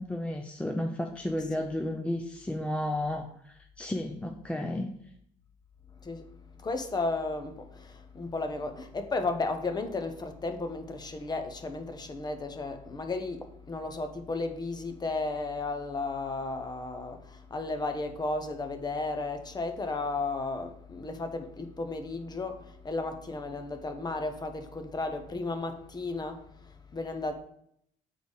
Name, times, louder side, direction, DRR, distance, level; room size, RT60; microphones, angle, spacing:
voice 1, 0.0-4.9, left 1 dB, 5° left, 0.4 m, -33 dB
voice 2, 1.3-1.7 6.0-6.2 6.6-27.4, left 3 dB, 25° left, 0.8 m, -34 dB
8.0 x 3.9 x 3.5 m
cardioid pair, 110°, 17 cm